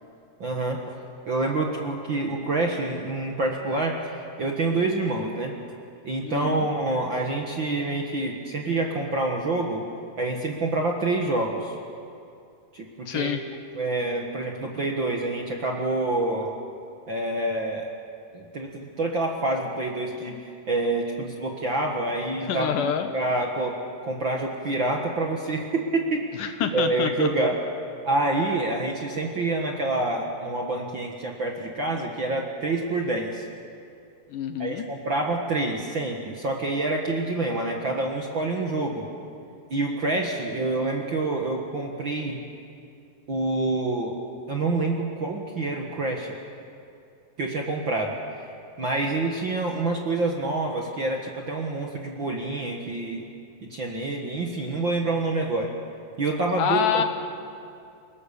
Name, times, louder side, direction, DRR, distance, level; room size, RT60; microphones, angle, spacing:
voice 1, 0.4-0.9 1.3-5.5 6.0-9.8 10.2-11.7 12.7-13.4 13.7-16.5 17.1-17.9 18.3-22.7 23.1-23.8 24.0-27.6 28.0-33.5 34.6-39.0 39.7-42.4 43.3-44.1 44.5-46.3 47.4-48.2 48.8-53.3 53.6-55.7 56.2-57.0, right 2 dB, 45° right, 0 dB, 1.7 m, -27 dB
voice 2, 6.2-6.7 13.1-13.4 22.4-23.1 26.4-27.5 34.3-34.8 56.6-57.0, left 8 dB, 70° left, 8 dB, 2.3 m, -27 dB
28.5 x 19.0 x 7.0 m, 2.5 s
omnidirectional pair, 4.3 m